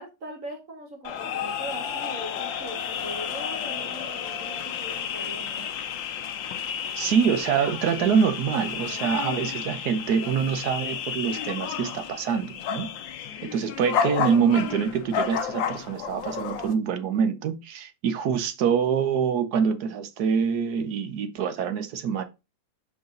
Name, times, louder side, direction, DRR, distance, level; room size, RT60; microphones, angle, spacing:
voice 1, 0.0-5.7, right 1 dB, 45° right, 1.4 m, -40 dB
sound 1, 1.0-16.7, left 8 dB, 75° left, 1.5 m, -32 dB
voice 2, 7.0-12.9 13.4-22.2, right 7 dB, 60° right, 1.2 m, -25 dB
6.2 x 4.9 x 3.8 m
omnidirectional pair, 2.1 m